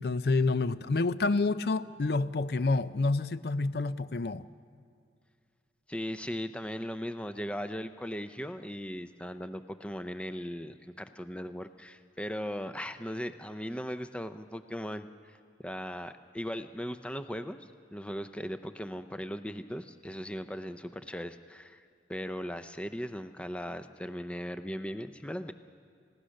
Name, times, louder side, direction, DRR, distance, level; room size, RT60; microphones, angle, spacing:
voice 1, 0.0-4.5, left 3 dB, 60° left, 14 dB, 0.5 m, -28 dB
voice 2, 5.9-15.4 15.6-21.8 22.1-25.5, equal, 5° left, 10 dB, 0.5 m, -38 dB
30.0 x 17.0 x 6.5 m, 2.3 s
head